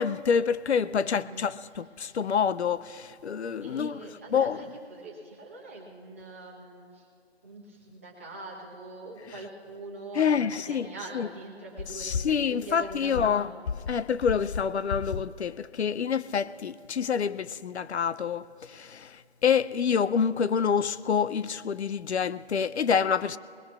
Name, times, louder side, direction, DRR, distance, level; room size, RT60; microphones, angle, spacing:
voice 1, 0.0-4.0 4.3-4.6 10.2-10.9 11.1-11.3 12.0-13.5 13.9-23.4, left 7 dB, 85° left, 0.5 m, -27 dB
voice 2, 0.9-1.5 3.6-7.1 7.4-13.7, right 2 dB, 15° right, 0.9 m, -43 dB
20.5 x 19.0 x 2.4 m
figure-of-eight pair, 170°, 32 cm